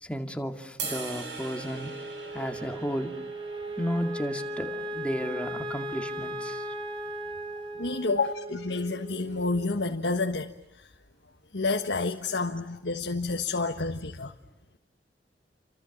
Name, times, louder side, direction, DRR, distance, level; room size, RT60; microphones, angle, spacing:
voice 1, 0.0-2.0 2.3-3.2 3.8-6.7, equal, 5° left, 2.3 m, -33 dB
sound 1, 0.8-7.0, right 4 dB, 75° right, 7.7 m, -42 dB
Wind instrument woodwind instrument, 1.7-10.2, right 1 dB, 30° right, 2.7 m, -37 dB
voice 2, 7.8-10.5 11.5-14.3, left 3 dB, 75° left, 1.4 m, -29 dB
29.5 x 26.0 x 7.4 m
head